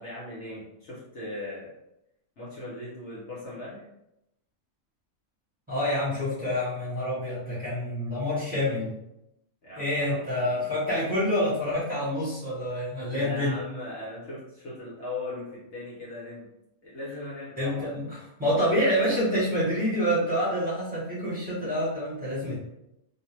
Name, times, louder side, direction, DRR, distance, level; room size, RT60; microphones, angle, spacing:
voice 1, 0.0-1.7 2.4-3.9 9.6-10.6 13.1-16.5 16.8-17.9, left 2 dB, 60° left, -6 dB, 1.0 m, -39 dB
voice 2, 5.7-8.9 9.8-13.6 17.6-22.6, equal, 5° right, -10 dB, 1.0 m, -27 dB
2.6 x 2.1 x 3.0 m, 0.84 s
omnidirectional pair, 1.5 m